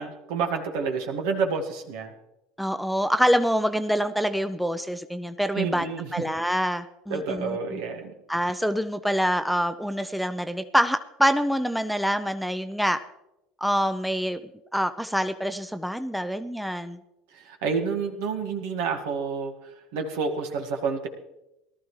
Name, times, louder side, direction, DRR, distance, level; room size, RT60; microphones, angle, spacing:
voice 1, 0.0-2.1 5.5-6.1 7.1-8.1 17.3-21.1, right 5 dB, 70° right, 4 dB, 1.7 m, -29 dB
voice 2, 2.6-7.8 8.3-13.0 13.6-14.4 14.7-17.0, equal, ahead, 11 dB, 0.7 m, -26 dB
18.5 x 12.5 x 3.2 m, 0.93 s
hypercardioid pair, 75°, 0 cm